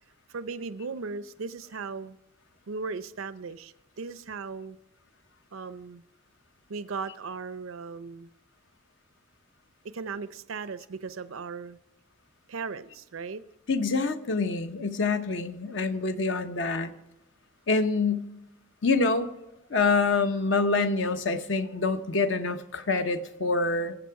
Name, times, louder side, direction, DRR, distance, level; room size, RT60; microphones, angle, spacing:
voice 1, 0.3-2.2 2.7-4.8 5.5-6.0 6.7-8.3 9.8-11.8 12.5-13.4, right 4 dB, 85° right, 14 dB, 0.6 m, -37 dB
voice 2, 13.7-16.9 17.7-18.3 18.8-19.3 19.7-24.0, left 3 dB, 60° left, 9 dB, 0.9 m, -26 dB
20.0 x 7.6 x 4.7 m, 0.93 s
head